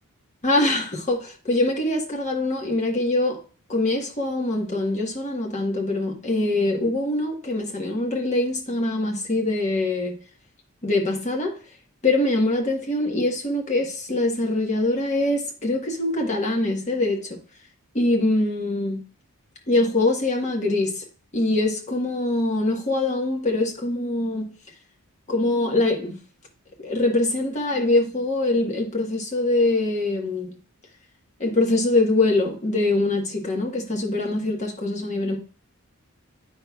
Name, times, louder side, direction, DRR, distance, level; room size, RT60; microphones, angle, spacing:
voice 1, 0.4-3.4 3.7-10.2 10.8-11.6 12.0-17.4 17.9-19.0 19.7-21.1 21.3-24.5 25.3-26.1 26.8-30.5 31.4-35.4, left 2 dB, 30° left, 1.4 m, -23 dB
8.6 x 5.9 x 2.4 m
head